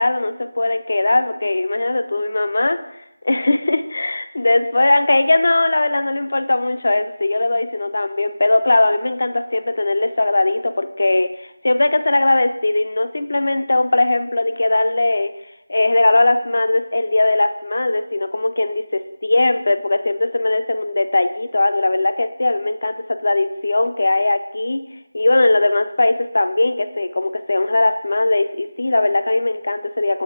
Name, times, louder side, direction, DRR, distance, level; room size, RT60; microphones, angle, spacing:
voice 1, 0.0-15.3 15.7-24.8 25.1-30.2, left 2 dB, 50° left, 10 dB, 0.4 m, -19 dB
6.9 x 3.6 x 3.7 m, 0.85 s
figure-of-eight pair, 165°, 0 cm